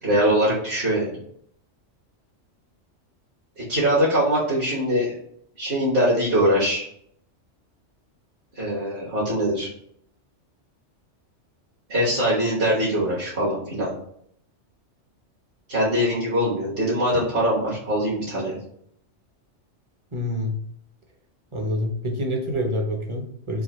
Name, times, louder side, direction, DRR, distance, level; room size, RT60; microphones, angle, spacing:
voice 1, 0.0-1.1 3.6-5.1 5.6-6.8 8.5-9.7 11.9-13.9 15.7-18.6, equal, 50° right, -7 dB, 1.4 m, -22 dB
voice 2, 20.1-20.6 21.5-23.6, left 1 dB, 30° right, 1 dB, 0.7 m, -27 dB
3.9 x 2.8 x 4.1 m, 0.68 s
omnidirectional pair, 1.2 m